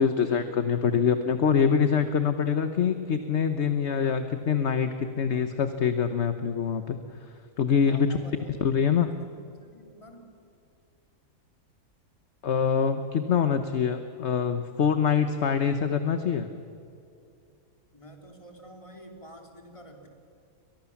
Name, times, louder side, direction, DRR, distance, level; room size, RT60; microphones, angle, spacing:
voice 1, 0.0-7.0 7.6-8.1 8.6-9.1 12.4-16.5, left 7 dB, 55° left, 9 dB, 1.3 m, -25 dB
voice 2, 7.8-10.4 17.9-20.1, equal, 20° left, 3 dB, 3.4 m, -49 dB
30.0 x 24.0 x 7.2 m, 2.5 s
omnidirectional pair, 1.5 m